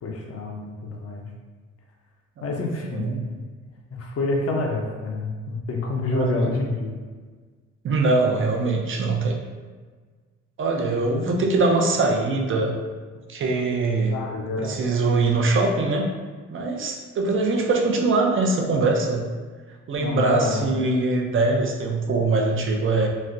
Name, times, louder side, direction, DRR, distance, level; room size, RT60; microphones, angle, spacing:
voice 1, 0.0-1.3 2.4-3.0 3.9-6.9 10.8-11.3 14.1-14.8 20.0-20.7, left 2 dB, 50° left, 0 dB, 0.6 m, -28 dB
voice 2, 6.1-6.5 7.8-9.4 10.6-12.7 13.3-14.2 14.6-16.1 16.5-19.3 19.9-23.1, right 3 dB, 45° right, 1 dB, 0.6 m, -22 dB
4.2 x 2.1 x 2.4 m, 1.5 s
cardioid pair, 90°, 30 cm